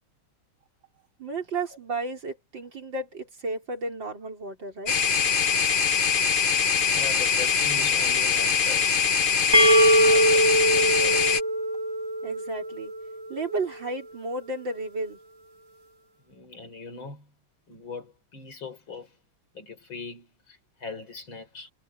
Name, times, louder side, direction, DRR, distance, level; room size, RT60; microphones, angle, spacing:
voice 1, 1.2-4.9 12.2-12.9 13.3-15.2, right 3 dB, 60° right, 5.3 m, -33 dB
sound 1, 4.9-11.4, left 6 dB, 45° left, 0.6 m, -23 dB
voice 2, 6.5-9.0 10.0-11.2 16.2-17.3 17.7-19.2 19.5-21.7, left 4 dB, 65° left, 5.6 m, -40 dB
sound 2, 9.5-13.2, right 1 dB, 15° right, 0.9 m, -22 dB
omnidirectional pair, 2.3 m